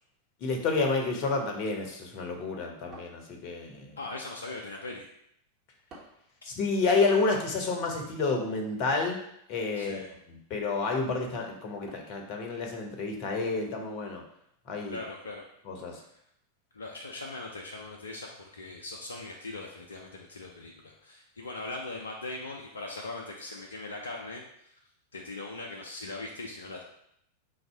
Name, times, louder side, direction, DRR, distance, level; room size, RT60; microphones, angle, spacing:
voice 1, 0.4-4.0 6.4-9.2 9.5-14.2 14.7-15.0 15.7-16.0, left 3 dB, 40° left, 2 dB, 0.8 m, -30 dB
sound 1, 2.9-3.8 5.9-6.4 8.9-9.3 11.9-12.3, right 2 dB, 30° right, 1.4 m, -51 dB
voice 2, 4.0-5.0 9.8-10.1 14.9-15.4 16.7-24.4 25.1-26.8, left 2 dB, 70° left, -1 dB, 0.5 m, -40 dB
3.9 x 2.7 x 4.4 m, 0.74 s
figure-of-eight pair, 90°, 0 cm